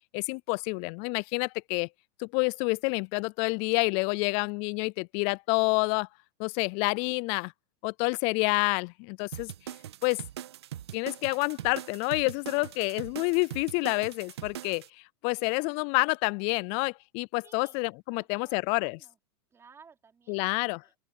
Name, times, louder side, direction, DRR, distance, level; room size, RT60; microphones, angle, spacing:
voice 1, 0.1-1.9 2.2-6.1 6.4-7.5 7.8-9.5 10.0-10.2 10.9-14.8 15.2-19.0 20.3-20.8, left 32 dB, 50° left, 0.4 m, -28 dB
sound 1, 9.3-14.9, right 11 dB, 85° right, 1.6 m, -41 dB
voice 2, 15.3-15.9 17.4-17.8 18.1-19.2 19.5-21.0, right 6 dB, 20° right, 5.0 m, -58 dB
open air
hypercardioid pair, 120°, 13 cm